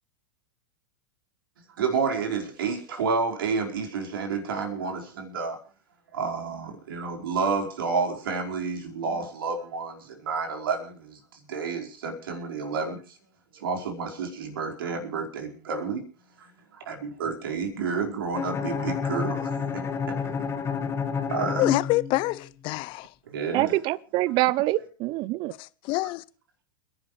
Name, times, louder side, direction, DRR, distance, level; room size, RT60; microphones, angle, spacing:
voice 1, 1.8-5.6 6.1-11.2 11.5-13.0 13.5-16.0 16.4-16.5 16.9-17.0 17.2-19.8 20.1-20.3 21.3-21.7 23.3-23.7, right 5 dB, 70° right, 4.9 m, -30 dB
Bowed string instrument, 18.3-22.5, left 6 dB, 20° left, 1.7 m, -30 dB
voice 2, 21.6-23.1 25.6-26.2, left 21 dB, 45° left, 0.7 m, -26 dB
voice 3, 23.5-25.5, right 18 dB, 40° right, 0.6 m, -25 dB
29.5 x 11.0 x 3.3 m
hypercardioid pair, 100°, 12 cm